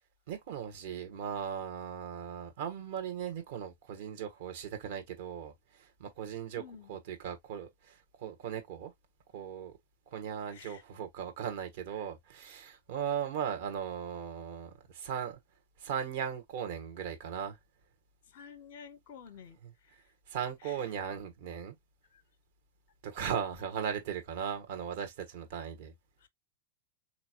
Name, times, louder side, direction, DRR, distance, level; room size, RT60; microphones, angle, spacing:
voice 1, 0.3-6.6 6.9-8.9 9.3-9.7 10.1-15.4 15.8-17.6 19.6-19.7 20.3-21.7 23.0-25.9, right 8 dB, 50° right, 1.3 m, -38 dB
voice 2, 6.6-7.0 10.5-10.8 18.3-19.6 20.6-20.8 26.2-26.3, left 7 dB, 50° left, 0.8 m, -50 dB
4.1 x 3.0 x 2.7 m
figure-of-eight pair, 90°, 0 cm